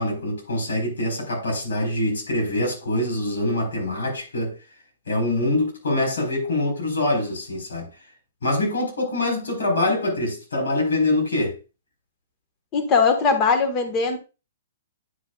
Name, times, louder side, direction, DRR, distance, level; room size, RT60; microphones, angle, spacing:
voice 1, 0.0-4.5 5.1-7.9 8.4-11.6, left 1 dB, 85° left, 4.4 m, -24 dB
voice 2, 12.7-14.2, left 5 dB, 30° left, 1.5 m, -20 dB
9.4 x 5.6 x 2.4 m
hypercardioid pair, 140°, 0 cm